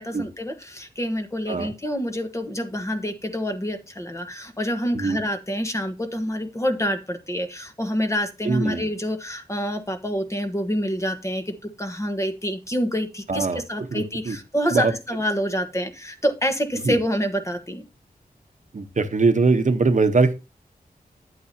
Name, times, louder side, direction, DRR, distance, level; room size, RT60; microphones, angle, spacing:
voice 1, 0.0-17.8, equal, 20° left, 7 dB, 1.2 m, -27 dB
voice 2, 8.4-8.8 13.3-13.6 13.9-14.4 14.7-14.9 16.8-17.0 18.7-20.3, right 3 dB, 55° right, 8 dB, 1.0 m, -21 dB
10.0 x 8.5 x 2.8 m, 0.29 s
wide cardioid pair, 75°, 15 cm